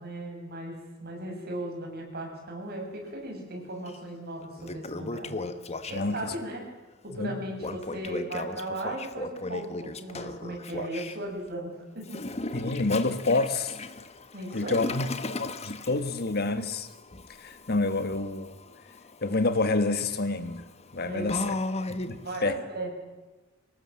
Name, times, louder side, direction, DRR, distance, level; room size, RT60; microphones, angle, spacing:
voice 1, 0.0-5.3 5.9-6.6 7.0-12.2 14.3-14.9 21.1-21.3 22.2-22.9, right 1 dB, 50° right, 1 dB, 7.1 m, -37 dB
Toilet flush, 3.9-4.0 4.4-6.3 7.6-11.2 12.0-22.3, left 2 dB, 30° left, 1.1 m, -37 dB
voice 2, 5.9-6.3 7.1-7.4 12.5-13.8 14.5-15.1 15.4-16.9 17.4-18.6 19.2-20.6 20.9-21.5 21.9-22.6, left 3 dB, 50° left, 10 dB, 1.5 m, -28 dB
24.5 x 19.0 x 7.7 m, 1.2 s
head